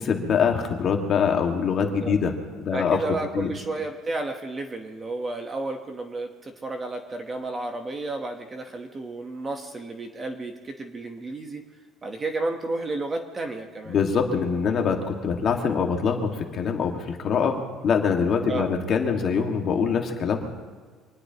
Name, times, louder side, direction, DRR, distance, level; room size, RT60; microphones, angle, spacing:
voice 1, 0.0-3.0 3.3-3.5 13.9-17.6 17.8-20.5, left 6 dB, 35° left, 3 dB, 1.7 m, -24 dB
voice 2, 2.7-11.6 12.0-14.0 18.5-18.7, right 2 dB, 15° right, 5 dB, 1.0 m, -32 dB
25.0 x 19.5 x 2.9 m, 1.5 s
cardioid pair, 180°, 0 cm